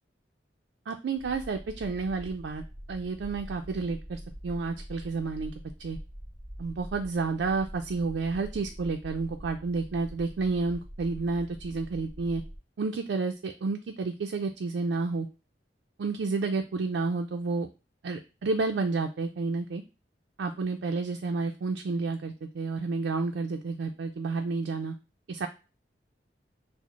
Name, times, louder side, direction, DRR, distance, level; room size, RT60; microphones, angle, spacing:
voice 1, 0.9-5.5 5.8-6.0 6.6-12.4 12.8-15.3 16.0-17.7 18.0-19.8 20.4-24.9 25.3-25.5, right 4 dB, 85° right, 4 dB, 0.4 m, -30 dB
sound 1, 1.2-12.6, equal, 10° right, 0.5 m, -44 dB
5.9 x 2.0 x 3.0 m, 0.31 s
head